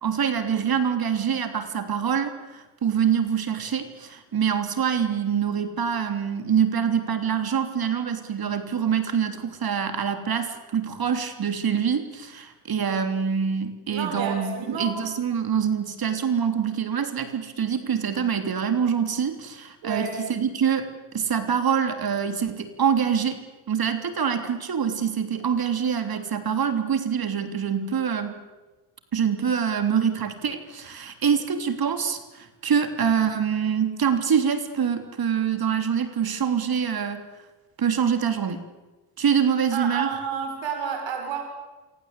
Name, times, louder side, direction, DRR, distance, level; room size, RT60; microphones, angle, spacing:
voice 1, 0.0-23.4 23.7-28.3 29.1-37.2 37.8-38.6 39.2-40.1, right 7 dB, 45° right, 8 dB, 3.3 m, -25 dB
voice 2, 13.9-15.0 19.8-20.1 39.7-41.4, right 6 dB, 60° right, 4 dB, 6.6 m, -30 dB
26.5 x 24.5 x 8.4 m, 1.2 s
hypercardioid pair, 55°, 50 cm